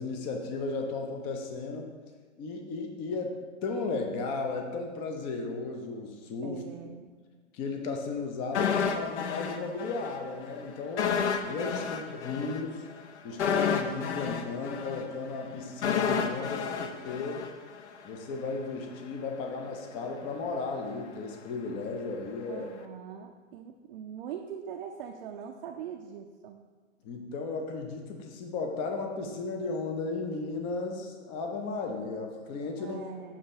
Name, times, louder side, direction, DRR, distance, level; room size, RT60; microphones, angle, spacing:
voice 1, 0.0-1.9 2.4-7.0 7.5-11.1 11.4-12.8 13.2-17.4 18.0-22.7 27.0-33.1, left 3 dB, 15° left, 3 dB, 0.4 m, -35 dB
voice 2, 6.4-7.1 11.8-12.0 12.3-12.8 13.3-13.7 22.5-26.6 32.8-33.4, right 8 dB, 50° right, 3 dB, 0.5 m, -43 dB
sound 1, 8.5-10.2 10.4-10.6 11.0-18.0 18.3-18.5, left 6 dB, 65° left, 0.7 m, -30 dB
7.3 x 2.9 x 5.3 m, 1.5 s
hypercardioid pair, 120°, 38 cm